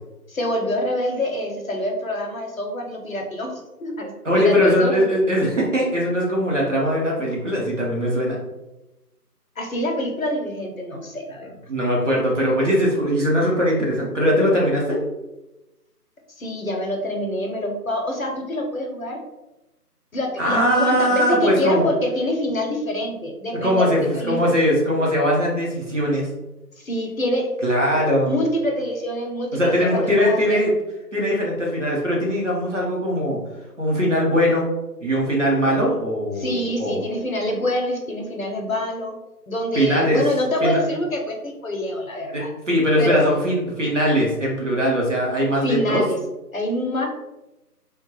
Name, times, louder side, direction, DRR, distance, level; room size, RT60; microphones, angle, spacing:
voice 1, 0.3-5.1 9.6-11.5 16.4-19.2 20.1-24.5 26.8-27.6 28.3-30.6 36.4-39.1 39.5-42.5 43.0-43.4 45.6-46.2 46.5-47.1, left 1 dB, 60° left, 2 dB, 0.6 m, -26 dB
voice 2, 4.2-8.4 11.7-15.0 20.4-21.8 23.6-26.3 27.6-28.3 29.5-30.7 31.1-33.4 33.8-34.7 35.0-37.0 39.7-40.2 40.6-40.8 42.3-46.0, equal, 50° right, -3 dB, 0.8 m, -20 dB
2.4 x 2.1 x 3.0 m, 0.99 s
figure-of-eight pair, 165°, 48 cm